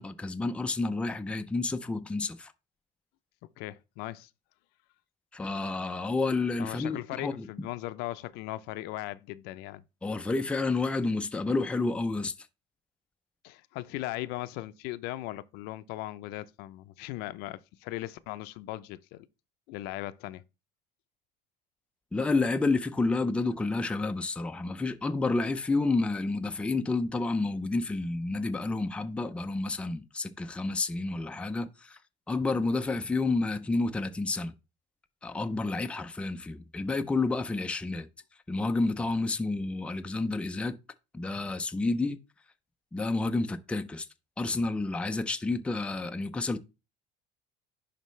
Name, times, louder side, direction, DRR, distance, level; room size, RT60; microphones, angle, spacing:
voice 1, 0.0-2.5 5.3-7.5 10.0-12.3 22.1-32.0 32.3-34.5 35.2-38.1 38.5-40.8 41.1-42.2 42.9-44.1 44.4-46.6, left 3 dB, 5° left, 0.4 m, -30 dB
voice 2, 3.6-4.3 6.6-9.8 13.4-19.3 19.7-20.4, left 16 dB, 75° left, 0.5 m, -38 dB
11.0 x 4.2 x 3.1 m
cardioid pair, 150°, 17 cm